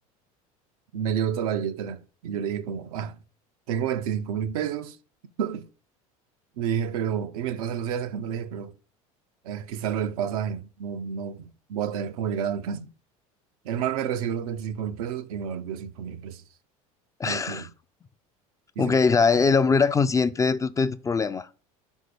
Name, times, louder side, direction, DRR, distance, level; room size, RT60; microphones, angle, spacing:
voice 1, 0.9-3.2 3.7-5.0 5.4-5.7 6.6-8.7 9.4-12.9 13.6-16.4 17.2-17.7 18.8-19.0, right 8 dB, 80° right, 0.6 m, -30 dB
voice 2, 17.2-17.7 18.8-21.5, left 5 dB, 20° left, 0.3 m, -22 dB
5.4 x 3.8 x 5.0 m
hypercardioid pair, 85°, 18 cm